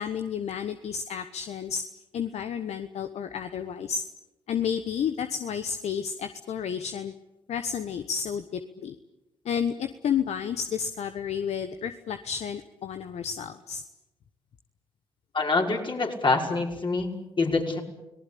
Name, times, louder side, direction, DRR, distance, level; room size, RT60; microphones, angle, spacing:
voice 1, 0.0-1.8 2.1-4.0 4.5-7.1 7.5-8.9 9.4-13.8, left 7 dB, 60° left, 9 dB, 1.2 m, -31 dB
voice 2, 15.3-17.8, left 3 dB, 40° left, 1 dB, 5.6 m, -26 dB
30.0 x 19.0 x 8.6 m, 0.95 s
hypercardioid pair, 40°, 12 cm